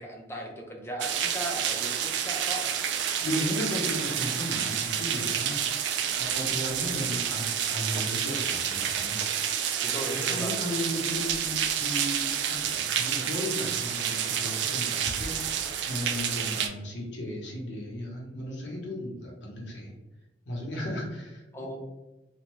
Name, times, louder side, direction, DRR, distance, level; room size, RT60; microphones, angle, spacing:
voice 1, 0.0-2.9 9.8-10.6 21.5-21.8, right 1 dB, 15° left, 0 dB, 0.5 m, -37 dB
sound 1, 1.0-16.7, right 8 dB, 65° right, 0.3 m, -29 dB
voice 2, 3.2-5.6 6.2-9.2 10.3-19.9 20.5-21.8, equal, 65° left, -2 dB, 0.9 m, -35 dB
2.5 x 2.3 x 3.0 m, 1.0 s
head